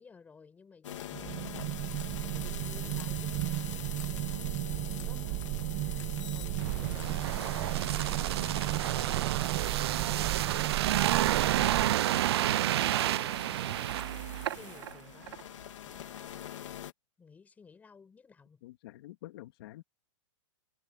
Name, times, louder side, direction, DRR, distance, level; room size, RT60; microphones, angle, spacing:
voice 1, 0.0-4.5 5.0-14.1 14.5-15.5 15.8-16.5 17.2-18.6, left 5 dB, 10° left, 5.0 m, -56 dB
sound 1, 0.8-16.9, left 11 dB, 65° left, 3.3 m, -45 dB
sound 2, 1.1-11.9, right 21 dB, 30° right, 1.4 m, -34 dB
sound 3, 6.6-14.9 15.3-15.4, right 14 dB, 50° right, 0.4 m, -30 dB
voice 2, 18.6-19.8, left 16 dB, 45° left, 2.2 m, -48 dB
hypercardioid pair, 165°, 17 cm